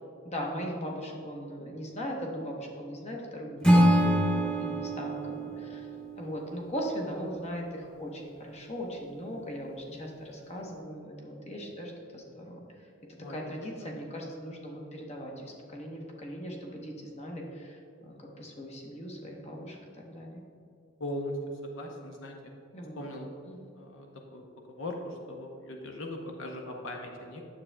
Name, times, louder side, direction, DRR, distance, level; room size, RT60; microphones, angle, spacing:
voice 1, 0.2-12.6 13.2-19.8 20.1-20.5 22.7-23.0 23.4-23.7, equal, 35° left, 0 dB, 0.9 m, -39 dB
Acoustic guitar / Strum, 3.6-6.8, equal, 5° left, 0.9 m, -25 dB
voice 2, 21.0-22.5 23.0-23.3 23.7-24.1 24.3-27.4, left 1 dB, 70° left, 1 dB, 0.7 m, -39 dB
9.4 x 7.3 x 2.2 m, 2.5 s
head